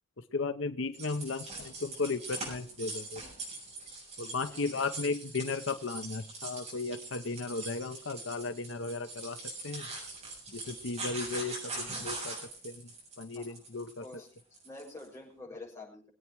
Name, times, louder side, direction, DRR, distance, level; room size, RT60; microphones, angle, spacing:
voice 1, 0.3-3.2 4.2-9.9 10.5-12.4 12.6-12.8 13.2-14.0, left 3 dB, 80° left, 9 dB, 0.8 m, -35 dB
sound 1, 0.9-15.1, right 2 dB, 35° right, 7.4 m, -42 dB
voice 2, 4.5-4.8 13.3-13.6 14.0-14.3 14.6-16.1, left 2 dB, 15° left, -3 dB, 6.2 m, -47 dB
22.5 x 8.7 x 4.7 m, 0.37 s
head